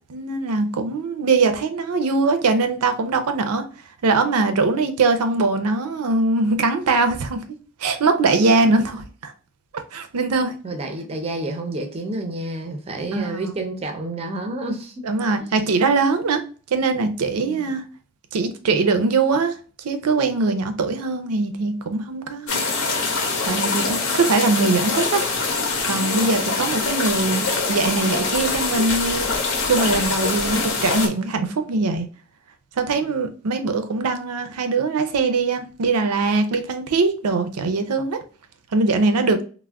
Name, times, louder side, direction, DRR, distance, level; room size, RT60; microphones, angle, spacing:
voice 1, 0.1-3.6 4.0-7.4 7.8-9.3 9.9-10.6 13.1-13.5 15.0-16.4 16.7-17.8 18.3-19.6 19.8-22.7 23.4-25.3 25.8-27.4 27.7-29.3 29.7-32.1 32.8-38.2 38.7-39.4, right 3 dB, 85° right, 0.5 m, -21 dB
voice 2, 10.6-15.0 15.4-15.5 17.4-17.7, right 2 dB, 25° right, 0.4 m, -29 dB
sound 1, 22.5-31.1, left 4 dB, 70° left, 0.7 m, -24 dB
3.4 x 2.0 x 2.2 m
head